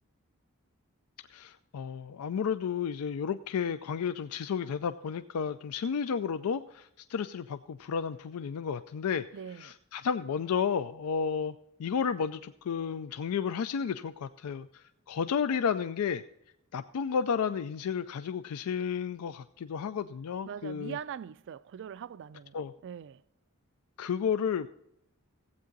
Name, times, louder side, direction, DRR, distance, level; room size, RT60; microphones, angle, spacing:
voice 1, 1.3-9.2 9.6-11.5 11.8-16.2 16.7-21.0 22.5-22.7 24.0-24.7, left 6 dB, 80° left, 0.4 m, -32 dB
voice 2, 9.3-9.7 20.4-22.5 22.8-23.2, right 8 dB, 55° right, 0.3 m, -41 dB
15.0 x 8.4 x 3.9 m
head